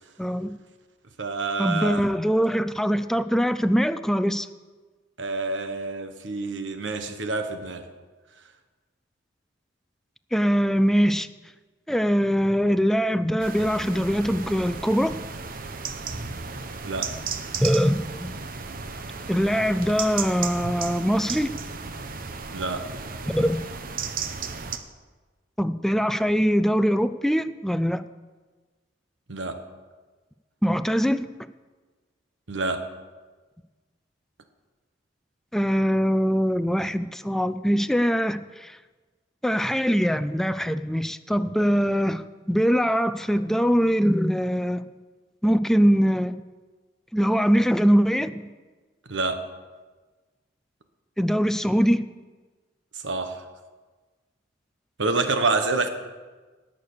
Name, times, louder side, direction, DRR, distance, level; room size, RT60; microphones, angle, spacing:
voice 1, 0.2-0.5 1.6-4.5 10.3-11.3 11.9-15.2 17.6-18.3 19.3-21.5 23.3-23.6 25.6-28.0 30.6-31.3 35.5-38.8 39.4-42.2 42.5-44.8 45.4-46.4 47.1-48.4 51.2-52.0, equal, ahead, 0.4 m, -22 dB
voice 2, 1.2-2.0 5.2-7.8 16.8-17.1 22.5-22.9 29.3-29.6 32.5-32.9 49.1-49.4 52.9-53.4 55.0-55.9, right 3 dB, 75° right, 1.3 m, -27 dB
sound 1, 13.4-24.8, right 5 dB, 50° right, 0.9 m, -34 dB
18.0 x 6.8 x 6.7 m
head